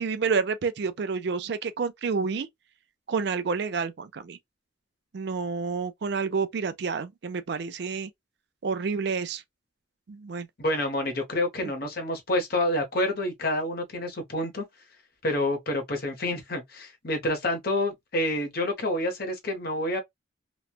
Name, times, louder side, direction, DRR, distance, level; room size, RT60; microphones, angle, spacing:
voice 1, 0.0-2.5 3.1-4.4 5.1-8.1 8.6-9.4 10.1-10.5, right 5 dB, 60° right, 0.4 m, -29 dB
voice 2, 10.6-14.6 15.2-20.0, left 1 dB, 55° left, 0.9 m, -28 dB
3.0 x 2.2 x 2.3 m
head